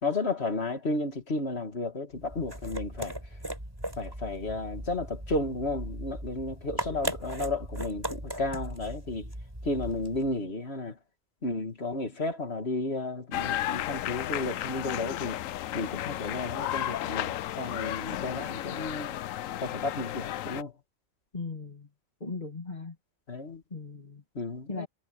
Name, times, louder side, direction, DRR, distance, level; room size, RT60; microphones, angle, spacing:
voice 1, 0.0-3.2 4.0-9.3 9.6-11.0 11.4-15.4 15.7-19.2 19.6-20.7 23.3-23.6 24.4-24.9, left 2 dB, 55° left, 2.4 m, -33 dB
sound 1, 2.1-10.3, right 1 dB, 20° right, 5.6 m, -38 dB
sound 2, 13.3-20.6, left 13 dB, 90° left, 1.0 m, -33 dB
voice 2, 21.3-21.9 22.2-22.9 23.7-24.2 24.7-24.9, left 3 dB, 35° left, 2.6 m, -38 dB
omnidirectional pair, 1.3 m